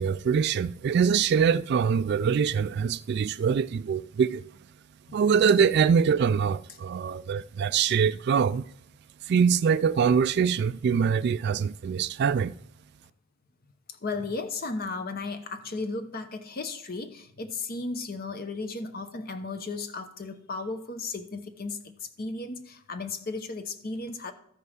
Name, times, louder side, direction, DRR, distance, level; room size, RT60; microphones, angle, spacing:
voice 1, 0.0-4.4 5.1-8.6 9.3-12.5, right 6 dB, 50° right, 0.3 m, -24 dB
voice 2, 14.0-24.3, left 3 dB, 45° left, 0.8 m, -35 dB
13.5 x 5.4 x 6.3 m
head